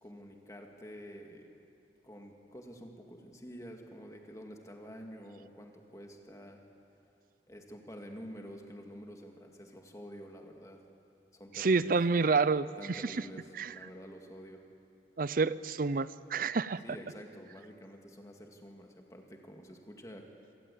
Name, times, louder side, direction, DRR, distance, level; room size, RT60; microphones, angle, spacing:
voice 1, 0.0-1.5 2.0-6.6 7.5-10.8 11.3-11.9 12.8-14.6 16.8-20.3, equal, 20° left, 2 dB, 2.2 m, -48 dB
voice 2, 11.5-13.2 13.6-13.7 15.2-16.8, right 4 dB, 50° right, 17 dB, 0.6 m, -29 dB
26.5 x 18.0 x 8.6 m, 2.6 s
head